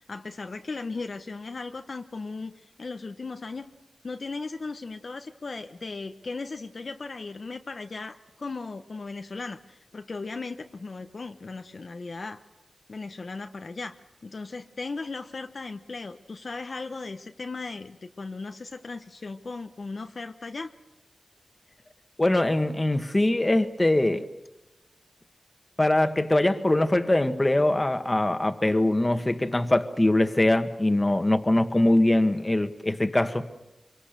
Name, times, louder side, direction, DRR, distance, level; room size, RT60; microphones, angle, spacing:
voice 1, 0.1-3.7 4.0-12.4 12.9-14.0 14.2-20.7, left 3 dB, 60° left, 1.1 m, -37 dB
voice 2, 22.2-24.3 25.8-33.6, left 1 dB, 25° left, 1.7 m, -22 dB
26.0 x 23.5 x 6.8 m
wide cardioid pair, 75°, 0 cm